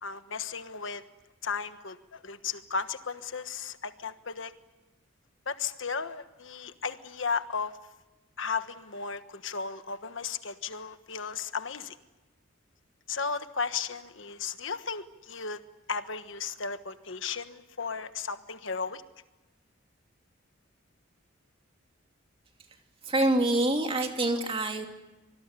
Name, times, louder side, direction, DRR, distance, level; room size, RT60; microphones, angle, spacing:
voice 1, 0.0-1.0 1.4-4.5 5.5-7.7 8.4-12.0 13.1-15.6 15.9-19.0, left 5 dB, 70° left, 10 dB, 1.3 m, -35 dB
voice 2, 23.0-24.9, right 1 dB, 25° right, 3 dB, 2.9 m, -26 dB
25.0 x 20.0 x 9.8 m, 1.1 s
head